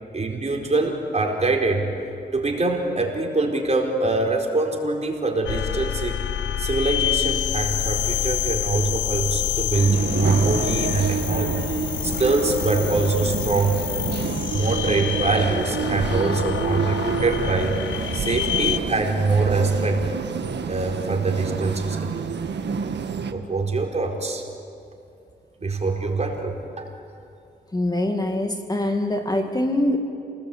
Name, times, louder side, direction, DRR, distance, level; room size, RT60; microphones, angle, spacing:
voice 1, 0.1-1.9 2.3-6.2 6.6-13.8 14.5-17.8 18.1-20.1 20.6-22.1 23.3-24.4 25.6-26.9, right 3 dB, 35° right, 1 dB, 4.5 m, -24 dB
sound 1, 5.5-18.8, left 11 dB, 90° left, 0.8 m, -27 dB
sound 2, 9.7-23.3, right 6 dB, 70° right, 1.6 m, -28 dB
voice 2, 27.7-30.0, left 1 dB, 20° left, 4 dB, 2.1 m, -23 dB
28.5 x 19.0 x 8.6 m, 2.6 s
cardioid pair, 70°, 19 cm